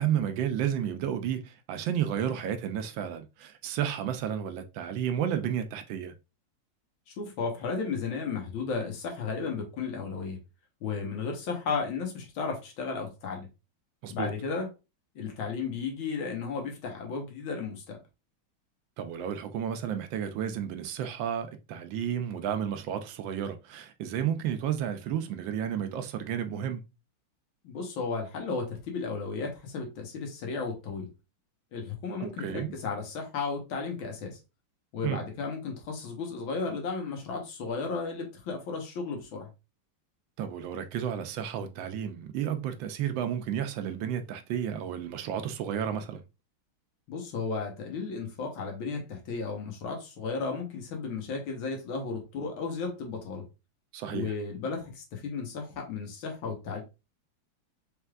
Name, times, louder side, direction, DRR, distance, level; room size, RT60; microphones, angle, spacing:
voice 1, 0.0-6.1 14.0-14.3 19.0-26.8 32.2-32.7 35.0-35.2 40.4-46.2 53.9-54.3, right 9 dB, 75° right, 1.3 m, -32 dB
voice 2, 7.1-10.4 10.8-13.5 14.1-14.7 15.2-18.0 27.6-31.1 31.7-34.4 34.9-39.5 47.1-53.5 54.1-56.8, left 4 dB, 85° left, 1.9 m, -34 dB
4.4 x 3.3 x 2.3 m
omnidirectional pair, 2.2 m